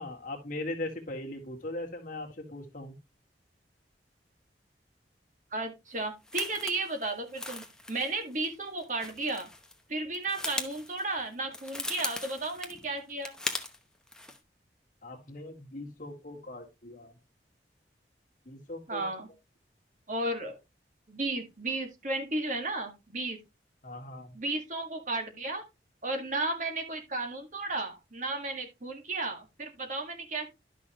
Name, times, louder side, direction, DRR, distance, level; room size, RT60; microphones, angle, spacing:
voice 1, 0.0-3.0 15.0-17.1 18.5-19.1 23.8-24.4, left 2 dB, 50° left, 2 dB, 1.8 m, -39 dB
voice 2, 5.5-9.5 9.9-13.3 18.9-19.3 20.1-20.6 21.1-23.4 24.3-25.6 26.0-30.5, right 2 dB, 45° right, 5 dB, 1.9 m, -34 dB
sound 1, 6.0-9.8 10.1-13.8 14.1-14.4, left 2 dB, 5° left, 0.8 m, -39 dB
11.5 x 6.1 x 3.0 m, 0.24 s
head